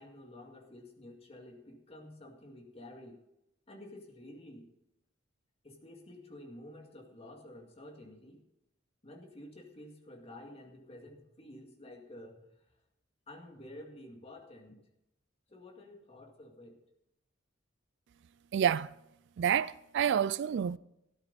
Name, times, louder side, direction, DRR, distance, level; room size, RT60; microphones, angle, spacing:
voice 1, 0.0-3.2 3.7-4.7 5.6-8.4 9.0-12.6 13.3-14.8 15.5-16.8, left 1 dB, 30° left, 2.2 m, -51 dB
voice 2, 18.5-18.9 19.4-20.8, right 8 dB, 55° right, 0.3 m, -28 dB
13.0 x 12.0 x 4.1 m
head